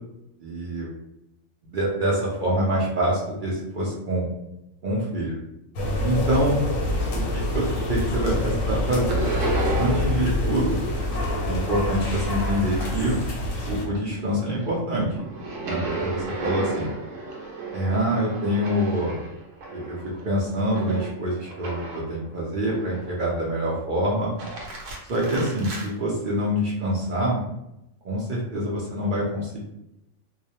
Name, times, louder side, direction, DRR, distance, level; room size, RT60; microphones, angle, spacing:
voice 1, 0.4-0.9 1.7-4.3 4.8-5.4 6.0-6.6 7.1-9.3 9.8-10.8 11.5-13.2 13.7-15.2 15.7-16.9 17.7-19.2 19.7-24.3 25.1-27.4 28.0-29.6, right 1 dB, 60° right, -5 dB, 0.5 m, -26 dB
sound 1, 5.7-13.8, left 1 dB, 90° left, 1.0 m, -26 dB
sound 2, 7.3-8.0 8.3-10.3 10.6-13.5 13.9-22.2 22.7-23.4 24.2-25.9, right 3 dB, 80° right, 1.0 m, -35 dB
2.3 x 2.0 x 2.8 m, 0.86 s
omnidirectional pair, 1.4 m